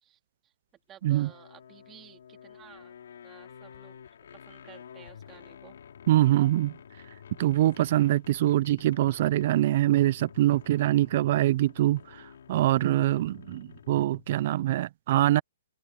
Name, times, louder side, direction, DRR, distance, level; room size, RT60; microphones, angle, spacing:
voice 1, 0.0-0.5 0.9-2.9 3.2-5.7, right 11 dB, 20° right, 3.1 m, -54 dB
sound 1, 1.0-14.4, left 8 dB, 70° left, 3.4 m, -50 dB
voice 2, 6.1-6.7 7.4-12.0 12.5-15.4, right 14 dB, 50° right, 0.5 m, -24 dB
hypercardioid pair, 145°, 0 cm